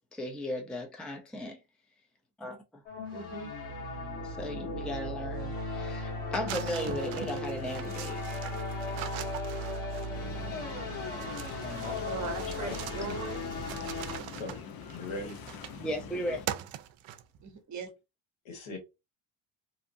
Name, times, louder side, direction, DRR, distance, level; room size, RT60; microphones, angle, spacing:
voice 1, 0.0-1.6 2.4-2.6 4.2-8.2 15.8-16.6, left 1 dB, ahead, 0.5 m, -36 dB
sound 1, 2.9-14.2, left 2 dB, 90° left, 1.4 m, -36 dB
voice 2, 3.1-3.5 12.0-13.5 17.4-17.9, right 5 dB, 35° right, 0.9 m, -39 dB
sound 2, 6.5-10.3 11.2-15.9 16.5-17.5, right 12 dB, 70° right, 0.5 m, -42 dB
sound 3, 10.1-16.5, left 6 dB, 45° left, 0.6 m, -45 dB
voice 3, 12.6-13.1 14.1-14.6 14.9-15.4 18.4-18.8, left 2 dB, 70° left, 1.5 m, -40 dB
2.7 x 2.5 x 2.6 m
cardioid pair, 80°, 50 cm